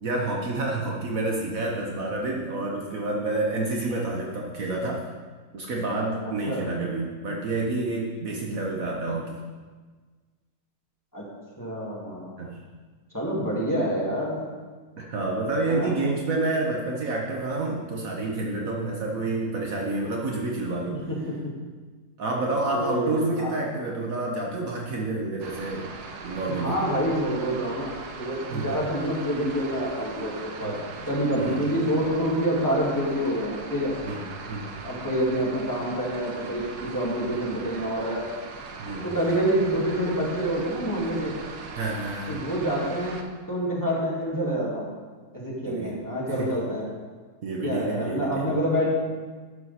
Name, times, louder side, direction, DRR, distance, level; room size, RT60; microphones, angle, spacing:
voice 1, 0.0-5.1 5.5-9.4 12.4-12.6 15.0-21.0 22.2-25.9 26.2-26.8 28.5-28.8 30.6-30.8 31.4-31.6 34.0-34.2 34.5-34.7 38.8-39.1 41.7-42.4 45.6-45.9 46.3-46.5 47.4-48.5, right 2 dB, 60° right, -1 dB, 1.4 m, -29 dB
voice 2, 11.6-12.3 13.1-14.4 15.7-15.9 21.1-21.2 22.7-23.5 26.3-27.9 28.2-30.7 31.1-33.9 34.8-38.2 39.0-41.3 42.3-43.2 43.5-44.9 45.3-46.9 47.6-48.9, equal, 10° left, -6 dB, 2.1 m, -27 dB
sound 1, 25.4-43.2, right 4 dB, 80° right, 1.4 m, -40 dB
11.0 x 6.3 x 4.2 m, 1.4 s
omnidirectional pair, 1.7 m